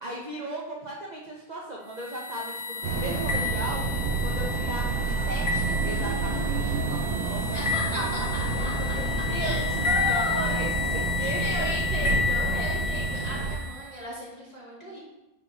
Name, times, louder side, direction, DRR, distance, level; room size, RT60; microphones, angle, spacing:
voice 1, 0.0-3.8 4.2-8.1 8.4-11.7, right 1 dB, 35° right, -3 dB, 0.8 m, -37 dB
sound 1, 1.9-14.0, left 6 dB, 50° left, 1.6 m, -31 dB
sound 2, 2.8-13.6, right 4 dB, 85° right, 1.3 m, -29 dB
voice 2, 7.5-8.4 9.4-10.6 11.4-15.0, equal, 25° left, -8 dB, 2.6 m, -35 dB
9.7 x 5.4 x 2.9 m, 0.97 s
omnidirectional pair, 1.6 m